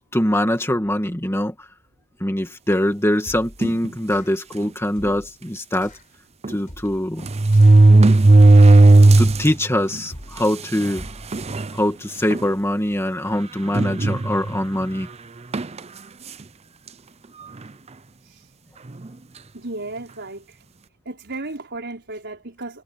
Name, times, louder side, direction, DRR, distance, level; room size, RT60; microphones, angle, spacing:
voice 1, 0.1-1.7 2.2-5.9 6.5-7.3 9.2-11.1 11.7-15.1, left 1 dB, 10° left, 2.2 m, -23 dB
sound 1, 3.2-3.7 4.1-4.5 5.0-5.4 5.8-6.1 6.7-7.1 7.5-7.9 8.4-8.8 9.2-9.7 10.1-10.5 11.0-11.4, equal, 40° left, 5.5 m, -41 dB
sound 2, 3.6-3.9 4.6-4.7 5.0-5.1 6.4-6.5 7.2-9.5 9.9-10.0 10.9-11.0 11.3-11.7 12.3-12.5 13.7-14.6 15.5-15.8, right 2 dB, 30° right, 0.6 m, -13 dB
voice 2, 19.5-20.6 21.1-22.8, right 2 dB, 55° right, 5.2 m, -34 dB
head